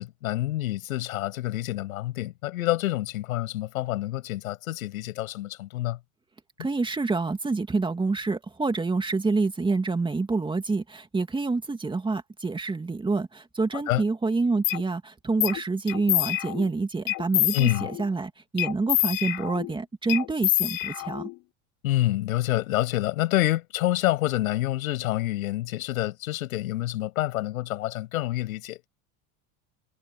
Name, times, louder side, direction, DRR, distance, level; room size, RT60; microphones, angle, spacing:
voice 1, 0.0-6.0 13.7-14.0 17.5-17.9 21.8-28.9, left 16 dB, 85° left, 7.6 m, -27 dB
voice 2, 6.6-21.3, right 3 dB, 10° right, 2.4 m, -27 dB
sound 1, 14.6-14.8 15.4-15.6 15.9-16.7 17.1-18.1 18.6-19.7 20.1-21.3, left 20 dB, 55° left, 3.2 m, -26 dB
supercardioid pair, 125°, 41 cm